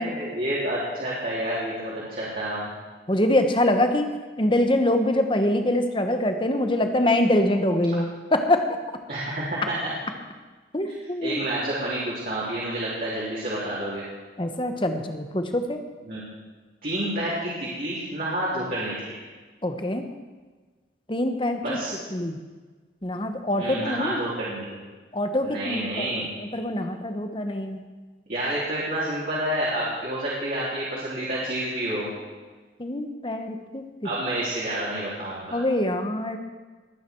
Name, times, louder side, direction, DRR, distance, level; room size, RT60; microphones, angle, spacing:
voice 1, 0.0-2.7 9.1-9.9 11.2-14.0 16.0-16.2 16.8-19.2 21.6-21.9 23.6-24.8 25.4-26.2 28.3-32.1 34.0-35.6, right 1 dB, 50° right, -8 dB, 3.5 m, -29 dB
voice 2, 3.1-8.6 10.7-11.4 14.4-15.8 19.6-20.1 21.1-21.8 22.1-22.4 23.0-24.2 25.1-27.8 32.8-33.8 35.5-36.4, left 1 dB, 25° left, 6 dB, 1.1 m, -24 dB
21.0 x 9.3 x 4.6 m, 1.3 s
head